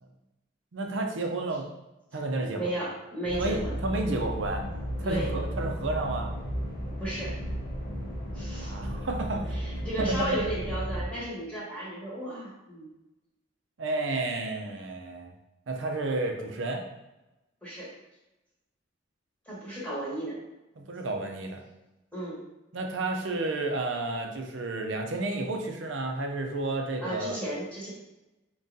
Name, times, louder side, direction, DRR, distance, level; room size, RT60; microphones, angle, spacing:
voice 1, 0.7-1.7 2.1-2.8 3.3-4.6 5.0-6.3 8.6-9.6 10.0-10.3 13.8-15.3 15.7-16.8 20.8-21.6 22.7-27.4, right 2 dB, 80° right, 3 dB, 0.6 m, -31 dB
voice 2, 2.5-3.8 5.0-5.3 7.0-7.4 8.3-8.7 9.5-12.9 17.6-17.9 19.5-20.3 22.1-22.4 27.0-27.9, right 1 dB, 5° left, -8 dB, 1.1 m, -34 dB
sound 1, 3.2-11.0, equal, 50° left, 0.7 m, -34 dB
3.7 x 3.0 x 2.6 m, 0.99 s
head